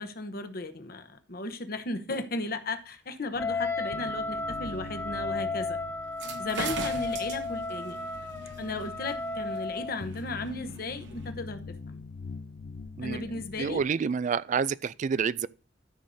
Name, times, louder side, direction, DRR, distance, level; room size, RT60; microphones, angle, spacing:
voice 1, 0.0-5.8 6.4-8.0 8.6-12.0 13.0-13.8, left 2 dB, 55° left, 0.9 m, -35 dB
sound 1, 3.3-13.9, left 4 dB, 80° left, 0.7 m, -44 dB
Wind instrument woodwind instrument, 3.4-10.0, left 3 dB, 10° left, 0.5 m, -34 dB
sound 2, 6.1-11.3, right 4 dB, 70° right, 0.9 m, -41 dB
voice 2, 13.6-15.5, right 6 dB, 40° right, 0.3 m, -28 dB
13.0 x 6.4 x 2.7 m
head